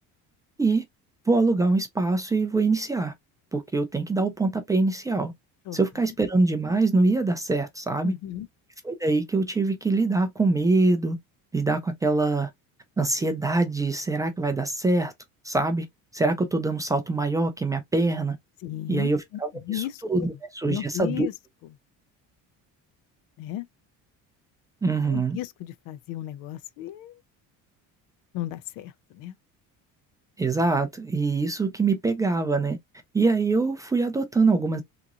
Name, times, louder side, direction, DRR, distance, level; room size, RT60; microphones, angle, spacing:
voice 1, 1.3-3.1 3.5-5.3 5.7-8.1 8.8-11.2 11.5-12.5 13.0-15.1 15.4-15.9 16.1-18.4 18.9-21.3 24.8-25.4 30.4-32.8 33.1-34.8, right 3 dB, 10° right, 0.3 m, -24 dB
voice 2, 8.0-8.5 18.6-19.1 19.6-20.3 20.6-21.3 23.4-23.7 25.1-27.2 28.3-29.3, left 13 dB, 65° left, 0.5 m, -34 dB
3.6 x 3.0 x 2.4 m
cardioid pair, 175°, 35 cm